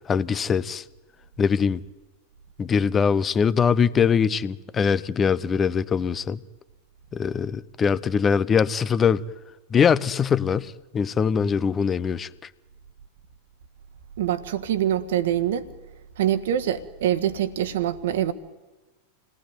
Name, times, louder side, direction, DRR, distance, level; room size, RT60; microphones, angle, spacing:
voice 1, 0.1-0.8 1.4-1.8 2.6-6.4 7.1-9.2 9.7-12.3, left 6 dB, 20° left, 0.8 m, -22 dB
voice 2, 14.2-15.7 16.2-18.3, right 11 dB, 60° right, 1.6 m, -24 dB
28.0 x 19.5 x 9.5 m
figure-of-eight pair, 90°, 0 cm